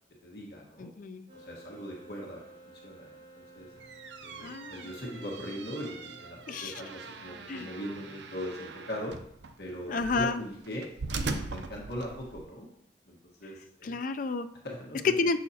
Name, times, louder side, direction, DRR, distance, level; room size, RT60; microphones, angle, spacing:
voice 1, 0.2-0.9 1.3-3.7 4.2-9.1 9.6-12.7 13.1-14.0 14.6-15.1, equal, 65° left, -2 dB, 1.4 m, -40 dB
voice 2, 0.8-1.3 4.4-4.9 6.5-6.7 7.5-7.7 9.9-10.4 13.8-14.5 15.2-15.4, left 3 dB, 50° left, 10 dB, 0.4 m, -31 dB
sound 1, 1.3-7.7, right 2 dB, 30° right, 2.2 m, -54 dB
sound 2, 3.6-12.5, right 3 dB, 85° right, 0.6 m, -41 dB
7.1 x 6.3 x 2.8 m, 0.71 s
head